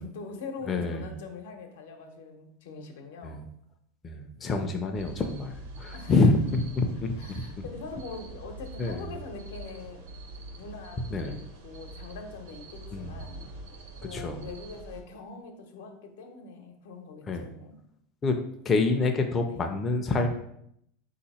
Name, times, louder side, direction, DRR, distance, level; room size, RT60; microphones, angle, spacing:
voice 1, 0.0-3.4 5.9-6.1 7.2-13.4 14.0-17.8 19.5-19.6, left 4 dB, 85° left, 4 dB, 0.8 m, -43 dB
voice 2, 0.7-1.1 3.2-3.4 4.0-7.4 8.8-9.1 11.1-11.4 12.9-13.2 14.1-14.4 17.3-17.4 18.2-18.3 18.7-20.3, left 3 dB, 20° left, 3 dB, 0.4 m, -27 dB
sound 1, 4.9-15.0, right 2 dB, 85° right, 0.9 m, -44 dB
4.0 x 2.8 x 4.1 m, 0.73 s
supercardioid pair, 155°, 0 cm